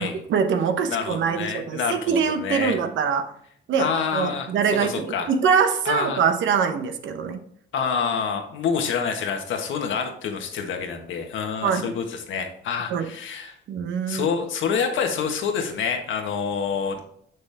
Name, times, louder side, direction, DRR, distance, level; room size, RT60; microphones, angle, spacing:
voice 1, 0.0-3.3 3.7-7.4 11.6-11.9 12.9-13.1 13.7-14.3, right 6 dB, 70° right, 8 dB, 1.0 m, -24 dB
voice 2, 0.9-2.8 3.8-4.5 4.8-5.3 5.8-6.2 7.7-13.5 14.1-17.0, left 6 dB, 75° left, 4 dB, 1.5 m, -27 dB
6.9 x 6.2 x 3.5 m, 0.65 s
cardioid pair, 90°, 20 cm